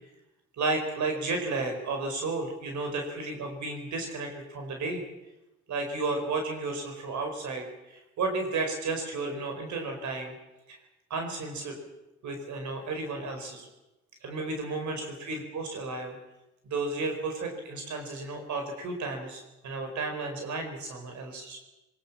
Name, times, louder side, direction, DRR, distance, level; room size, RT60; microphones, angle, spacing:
voice 1, 0.6-5.0 5.7-10.3 10.7-10.8 11.1-11.8 12.2-13.7 14.2-16.2 16.7-21.6, right 3 dB, 70° right, 4 dB, 4.9 m, -33 dB
23.0 x 21.0 x 7.4 m, 0.98 s
cardioid pair, 90°, 30 cm